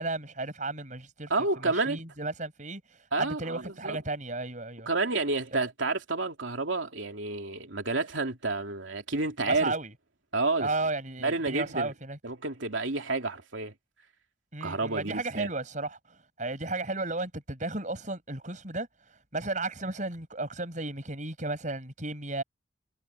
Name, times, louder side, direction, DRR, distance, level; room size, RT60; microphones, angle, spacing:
voice 1, 0.0-1.3 1.6-2.8 3.2-4.9 5.5-5.6 9.5-9.9 10.6-12.2 14.5-16.0 16.4-18.9 19.3-22.4, right 2 dB, 40° right, 7.1 m, -34 dB
voice 2, 1.3-2.0 3.1-4.0 4.9-9.7 10.3-10.7 11.2-11.9 12.2-13.7 14.6-15.5, right 3 dB, 80° right, 2.9 m, -30 dB
head